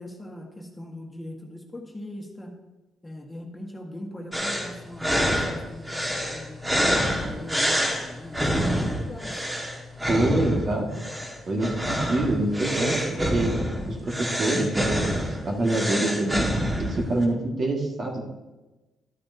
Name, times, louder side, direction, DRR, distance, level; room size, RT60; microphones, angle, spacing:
voice 1, 0.0-2.5 3.0-6.7 7.2-9.6, left 1 dB, 15° left, 0 dB, 1.6 m, -40 dB
sound 1, 4.3-17.2, equal, 15° right, 1.7 m, -27 dB
voice 2, 10.1-11.0 11.5-13.5 13.9-16.5 16.8-18.2, right 2 dB, 45° right, 0 dB, 1.9 m, -26 dB
12.0 x 8.6 x 2.8 m, 1.1 s
cardioid pair, 90°, 0 cm